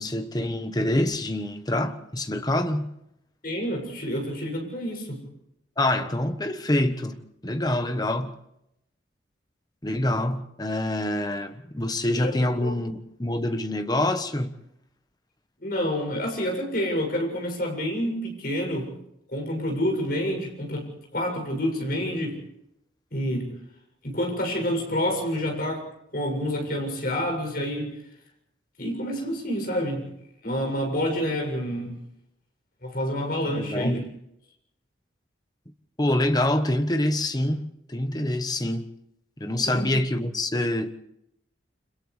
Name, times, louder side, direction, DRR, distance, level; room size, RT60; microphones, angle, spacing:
voice 1, 0.0-2.9 5.8-8.3 9.8-14.6 33.6-34.0 36.0-38.9 39.4-40.9, left 1 dB, 20° left, 1.2 m, -26 dB
voice 2, 3.4-5.2 12.2-12.8 15.6-18.9 19.3-22.4 23.1-23.5 24.0-25.9 26.1-27.9 28.8-30.1 30.4-32.0 32.8-34.0 39.6-39.8, equal, 50° left, 7.2 m, -28 dB
30.0 x 26.5 x 3.4 m
head